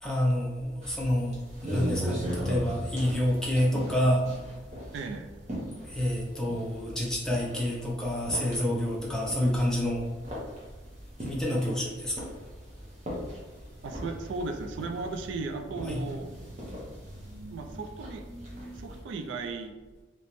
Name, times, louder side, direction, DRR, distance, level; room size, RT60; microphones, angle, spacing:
voice 1, 0.0-1.4 1.6-4.3 5.8-10.1 11.2-12.1 15.9-16.0, left 1 dB, 5° left, -4 dB, 0.5 m, -28 dB
sound 1, 0.8-19.0, equal, 35° right, 0.8 m, -39 dB
voice 2, 4.9-5.3 13.8-16.3 17.5-18.2 18.7-19.7, right 3 dB, 70° right, 5 dB, 0.3 m, -36 dB
3.1 x 2.8 x 3.0 m, 1.3 s
head